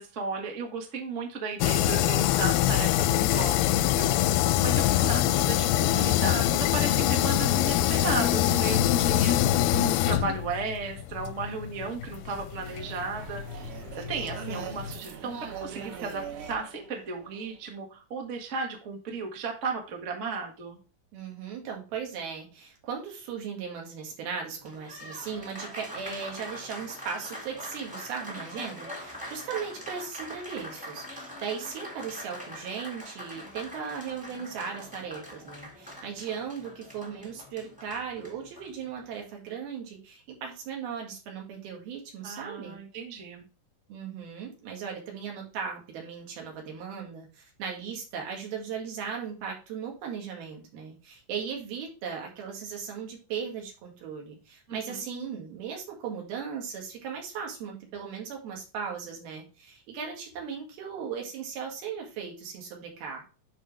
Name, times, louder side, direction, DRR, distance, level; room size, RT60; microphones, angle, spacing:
voice 1, 0.0-9.4 9.7-20.8 42.2-43.4 54.7-55.0, right 4 dB, 45° right, 2 dB, 0.9 m, -35 dB
sound 1, 1.6-15.0, left 13 dB, 90° left, 2.4 m, -25 dB
sound 2, 12.6-17.8, right 7 dB, 65° right, 2.2 m, -41 dB
voice 2, 21.1-42.8 43.9-63.2, right 6 dB, 85° right, 0 dB, 3.9 m, -37 dB
Applause, 24.5-39.2, equal, 5° right, 0.8 m, -43 dB
11.0 x 4.3 x 3.3 m, 0.33 s
omnidirectional pair, 4.2 m